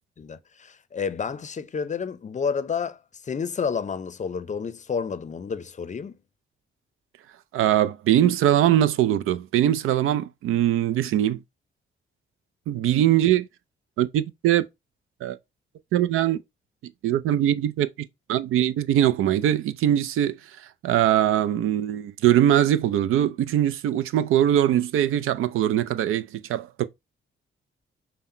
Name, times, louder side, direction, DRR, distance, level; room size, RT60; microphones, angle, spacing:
voice 1, 0.2-6.2, left 6 dB, 35° left, 0.5 m, -30 dB
voice 2, 7.5-11.4 12.7-13.5 14.0-14.6 15.2-15.4 15.9-16.4 17.0-17.9 18.3-20.4 20.8-26.8, right 11 dB, 85° right, 0.4 m, -21 dB
5.5 x 2.1 x 4.2 m
cardioid pair, 75°, 21 cm